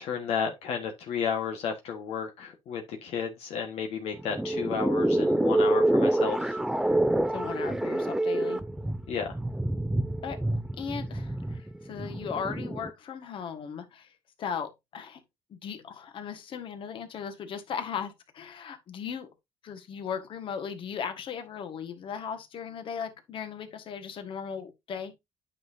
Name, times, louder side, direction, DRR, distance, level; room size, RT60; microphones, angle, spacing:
voice 1, 0.0-6.6 9.1-9.3, left 6 dB, 70° left, 1.4 m, -32 dB
sound 1, 4.1-12.9, right 1 dB, 5° right, 0.6 m, -27 dB
voice 2, 7.3-8.6 10.2-10.4 10.8-14.1 14.4-15.2 15.5-19.3 19.6-25.1, left 7 dB, 55° left, 1.6 m, -37 dB
9.3 x 5.6 x 2.7 m
cardioid pair, 100°, 11 cm